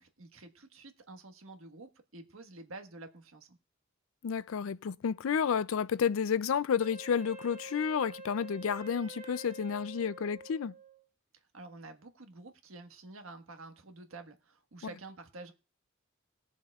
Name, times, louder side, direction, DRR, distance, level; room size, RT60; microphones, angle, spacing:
voice 1, 0.0-3.6 11.5-15.5, right 3 dB, 85° right, 1.5 m, -49 dB
voice 2, 4.2-10.7 14.8-14.9, left 7 dB, 70° left, 0.4 m, -31 dB
Wind instrument woodwind instrument, 6.8-11.0, right 2 dB, 35° right, 1.3 m, -48 dB
21.0 x 7.2 x 2.4 m
head